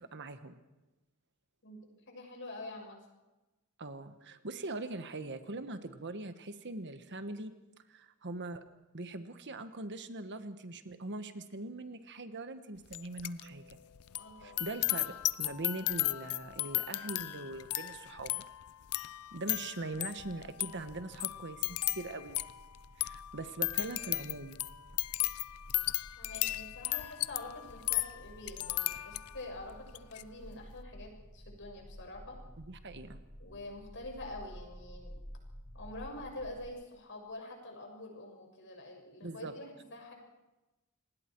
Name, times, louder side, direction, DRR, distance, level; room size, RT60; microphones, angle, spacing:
voice 1, 0.1-0.6 3.8-7.5 7.9-8.6 8.9-13.8 14.4-18.4 19.3-22.4 23.0-24.6 32.6-33.2 39.2-39.5, right 2 dB, 55° right, 9 dB, 1.3 m, -42 dB
voice 2, 1.6-3.0 14.2-14.7 26.2-32.4 33.4-35.1 35.7-40.1, left 2 dB, 55° left, 2 dB, 6.4 m, -46 dB
sound 1, 12.9-13.4 13.7-29.5 29.9-30.2, left 18 dB, 75° left, 0.6 m, -36 dB
sound 2, 20.3-36.7, equal, 35° left, 5.4 m, -53 dB
28.0 x 20.0 x 4.6 m, 1.0 s
head